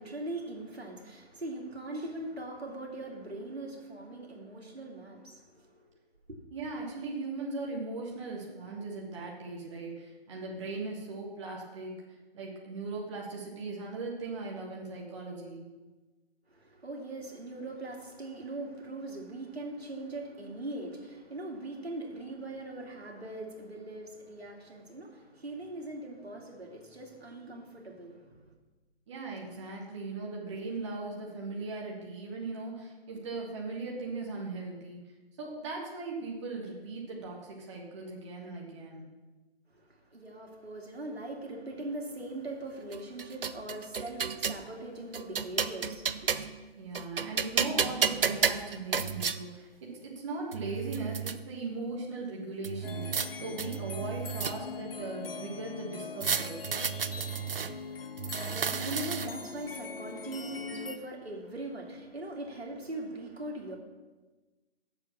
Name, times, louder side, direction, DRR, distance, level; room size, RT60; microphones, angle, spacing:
voice 1, 0.0-5.8 6.3-6.4 16.5-28.4 40.1-46.5 58.3-63.8, right 2 dB, 80° right, 0 dB, 2.4 m, -41 dB
voice 2, 6.5-11.9 12.3-15.6 29.1-35.0 35.4-39.0 46.8-49.7 50.1-56.5, right 3 dB, 30° right, -2 dB, 1.4 m, -38 dB
sound 1, 42.9-44.6 45.1-46.6 46.9-49.4 50.1-50.2 50.5-51.4 52.6-53.3 53.6-54.9 56.2-57.7 58.2-59.5, right 6 dB, 60° right, 0.6 m, -32 dB
sound 2, 52.8-61.0, left 5 dB, 65° left, 0.9 m, -41 dB
7.3 x 6.6 x 7.0 m, 1.2 s
figure-of-eight pair, 145°, 31 cm